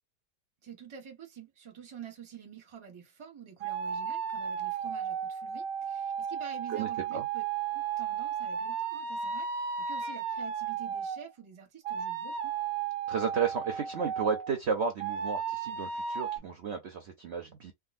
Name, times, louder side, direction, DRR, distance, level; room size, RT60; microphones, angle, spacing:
voice 1, 0.6-7.4 7.7-12.6, right 8 dB, 25° right, 0.7 m, -48 dB
sound 1, 3.6-11.2 11.8-14.5 15.0-16.4, right 7 dB, 90° right, 1.2 m, -34 dB
voice 2, 6.7-7.2 13.1-17.7, right 6 dB, 60° right, 0.7 m, -33 dB
3.6 x 2.3 x 2.5 m
omnidirectional pair, 1.8 m